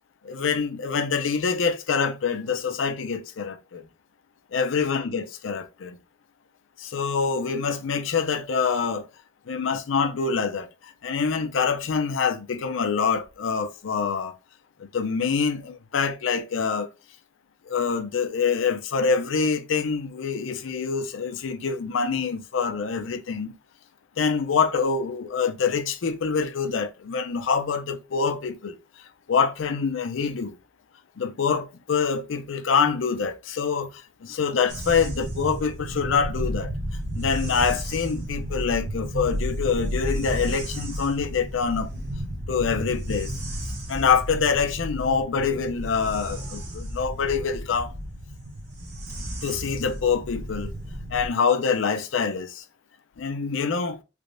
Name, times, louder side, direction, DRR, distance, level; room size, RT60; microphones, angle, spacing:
voice 1, 0.2-3.8 4.5-6.0 6.8-9.1 9.5-14.3 14.8-16.9 17.7-23.6 24.2-28.8 29.3-30.6 31.2-36.7 37.1-41.9 42.5-43.3 43.9-47.9 49.4-50.7 51.1-52.6 53.2-54.0, left 5 dB, 85° left, 0.5 m, -25 dB
sound 1, 34.7-51.3, equal, 55° right, 0.9 m, -32 dB
3.4 x 3.1 x 2.6 m
head